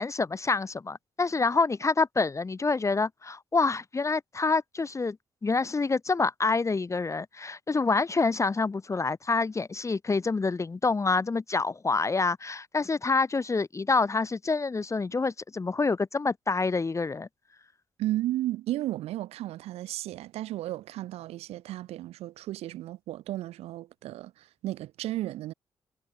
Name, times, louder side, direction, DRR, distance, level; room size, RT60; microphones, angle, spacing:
voice 1, 0.0-5.2 5.4-17.3, left 4 dB, 30° left, 0.7 m, -27 dB
voice 2, 18.0-25.5, right 15 dB, 75° right, 4.7 m, -34 dB
hypercardioid pair, 45°, 11 cm